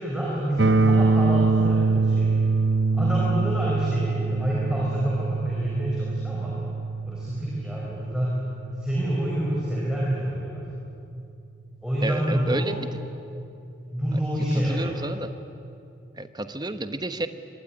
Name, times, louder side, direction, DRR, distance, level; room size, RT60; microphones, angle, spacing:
voice 1, 0.0-2.4 2.9-6.6 7.1-8.4 8.8-10.6 11.8-12.7 13.9-15.0, equal, 5° right, -6 dB, 5.3 m, -27 dB
sound 1, 0.6-10.5, right 3 dB, 65° right, 0.8 m, -25 dB
voice 2, 12.0-12.9 14.5-15.3 16.1-17.3, right 2 dB, 20° right, 10 dB, 1.0 m, -31 dB
25.5 x 21.5 x 9.8 m, 2.5 s
head